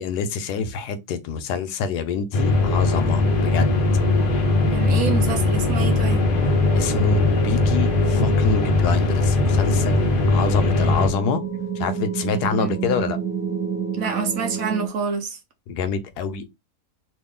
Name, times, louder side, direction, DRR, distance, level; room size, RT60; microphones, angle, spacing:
voice 1, 0.0-3.7 6.7-11.4 11.8-13.2 15.7-16.5, left 5 dB, 85° left, 1.2 m, -26 dB
sound 1, 2.3-11.1, left 2 dB, 60° left, 0.5 m, -20 dB
sound 2, 2.8-14.9, right 4 dB, 15° right, 0.3 m, -30 dB
voice 2, 4.7-6.3 12.6-12.7 13.9-15.4, right 5 dB, 65° right, 1.2 m, -27 dB
3.1 x 2.5 x 3.6 m
omnidirectional pair, 1.7 m